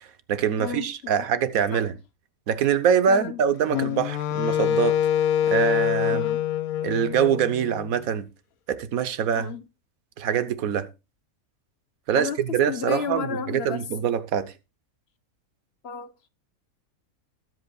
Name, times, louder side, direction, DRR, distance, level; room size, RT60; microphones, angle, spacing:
voice 1, 0.0-2.0 2.5-5.0 5.5-6.2 6.8-8.3 8.7-9.5 10.2-10.9 12.1-14.5, right 8 dB, 80° right, 1.3 m, -24 dB
voice 2, 0.6-1.2 1.7-1.8 3.1-3.4 6.1-6.4 9.4-9.6 12.1-13.8 15.8-16.3, left 7 dB, 50° left, 1.0 m, -33 dB
Wind instrument woodwind instrument, 3.7-7.9, left 10 dB, 80° left, 1.1 m, -25 dB
19.5 x 7.9 x 2.3 m
omnidirectional pair, 1.5 m